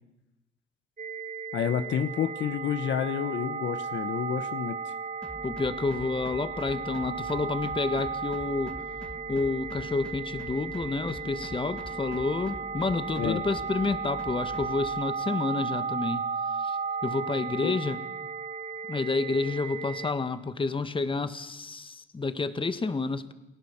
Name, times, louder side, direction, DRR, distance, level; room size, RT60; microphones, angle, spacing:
sound 1, 1.0-20.1, right 5 dB, 40° right, 1.4 m, -35 dB
voice 1, 1.5-4.9 13.2-13.4 17.6-17.7, left 8 dB, 65° left, 11 dB, 1.2 m, -29 dB
sound 2, 5.2-14.9, left 1 dB, 5° left, 2.7 m, -45 dB
voice 2, 5.4-8.8 9.3-16.3 16.6-18.0 18.9-23.3, left 3 dB, 25° left, 11 dB, 1.8 m, -29 dB
30.0 x 19.5 x 7.4 m, 0.97 s
cardioid pair, 90°, 20 cm